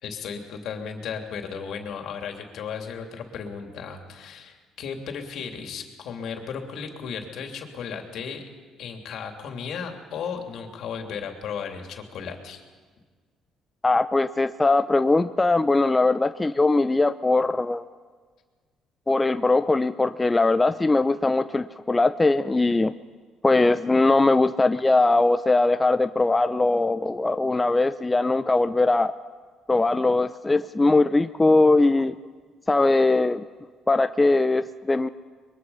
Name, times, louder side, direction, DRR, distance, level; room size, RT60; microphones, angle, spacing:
voice 1, 0.0-8.4 8.8-12.6, left 6 dB, 70° left, 4 dB, 3.0 m, -35 dB
voice 2, 13.8-17.8 19.1-22.9 23.4-29.1 29.7-32.1 32.7-33.5 33.9-35.1, left 2 dB, 20° left, 10 dB, 0.6 m, -21 dB
23.5 x 22.0 x 5.7 m, 1.5 s
supercardioid pair, 70°, 0 cm